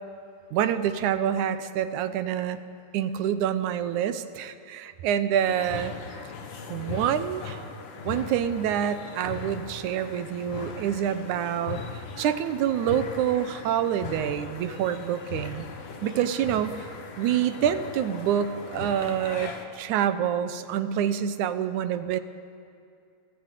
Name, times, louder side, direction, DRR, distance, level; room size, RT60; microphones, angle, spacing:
voice 1, 0.5-2.6 2.9-5.9 6.7-7.6 8.0-11.8 12.2-15.7 16.0-16.9 17.2-22.2, right 9 dB, 85° right, 12 dB, 2.3 m, -27 dB
sound 1, 5.3-19.7, left 5 dB, 50° left, 1.8 m, -39 dB
28.0 x 14.5 x 8.3 m, 2.5 s
omnidirectional pair, 3.4 m